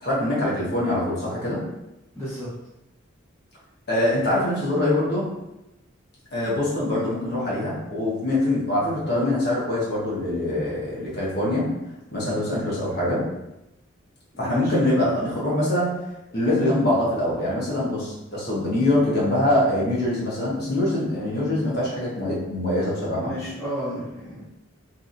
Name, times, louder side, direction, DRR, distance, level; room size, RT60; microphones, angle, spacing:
voice 1, 0.0-1.6 3.9-5.3 6.3-11.7 12.1-13.3 14.4-15.9 16.3-23.3, left 1 dB, 50° left, -7 dB, 1.0 m, -24 dB
voice 2, 2.1-2.5 6.9-7.1 12.4-12.7 14.4-14.7 23.1-24.4, equal, 15° left, -11 dB, 0.7 m, -33 dB
2.7 x 2.7 x 2.5 m, 0.92 s
head